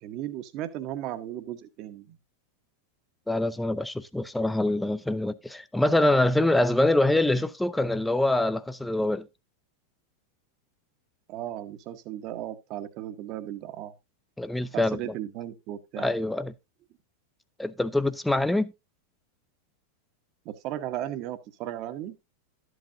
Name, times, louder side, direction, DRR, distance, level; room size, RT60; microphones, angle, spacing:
voice 1, 0.0-2.2 11.3-13.9 14.7-16.1 20.4-22.2, right 12 dB, 40° right, 1.0 m, -36 dB
voice 2, 3.3-9.3 14.4-15.0 16.0-16.5 17.6-18.7, left 1 dB, 5° left, 0.5 m, -24 dB
12.5 x 7.9 x 2.6 m
figure-of-eight pair, 90°, 0 cm